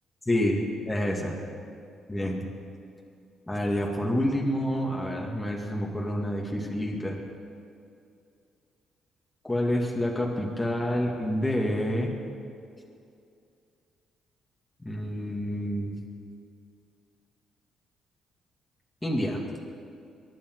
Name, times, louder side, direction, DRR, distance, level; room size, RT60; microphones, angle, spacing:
voice 1, 0.3-1.4 2.1-2.4 3.5-7.2 9.5-12.1 14.8-15.9 19.0-19.4, equal, 10° left, -2 dB, 2.3 m, -28 dB
23.0 x 10.5 x 4.8 m, 2.5 s
cardioid pair, 90°, 0 cm